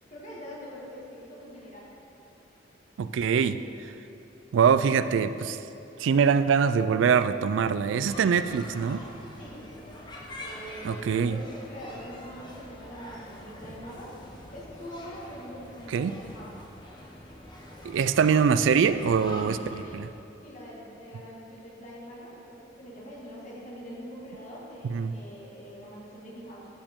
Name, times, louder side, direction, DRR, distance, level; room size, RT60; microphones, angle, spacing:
voice 1, 0.1-1.9 9.4-10.0 10.3-14.1 14.5-16.5 19.8-20.0 20.4-26.7, equal, 40° left, -5 dB, 1.9 m, -44 dB
voice 2, 3.0-3.9 4.5-5.6 6.0-9.1 10.8-11.4 15.9-16.2 17.8-20.1 24.8-25.1, right 6 dB, 80° right, 13 dB, 0.3 m, -24 dB
sound 1, 8.1-20.0, left 1 dB, 25° left, 0.9 m, -44 dB
13.5 x 5.0 x 3.7 m, 2.9 s
head